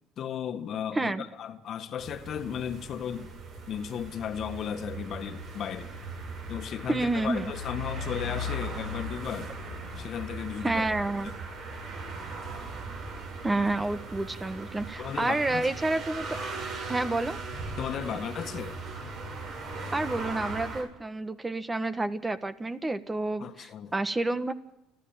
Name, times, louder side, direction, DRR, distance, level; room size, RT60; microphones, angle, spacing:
voice 1, 0.2-3.3 3.7-5.9 6.5-9.5 10.0-10.9 11.2-11.3 15.0-15.7 17.8-18.8 23.4-23.9, left 8 dB, 55° left, 1.7 m, -35 dB
voice 2, 0.9-1.2 6.9-7.5 10.6-11.3 13.4-16.3 16.9-17.4 19.9-24.5, right 2 dB, 20° right, 1.3 m, -29 dB
sound 1, 2.0-20.8, right 2 dB, 60° right, 7.9 m, -38 dB
29.5 x 11.5 x 9.1 m
supercardioid pair, 80°, 0 cm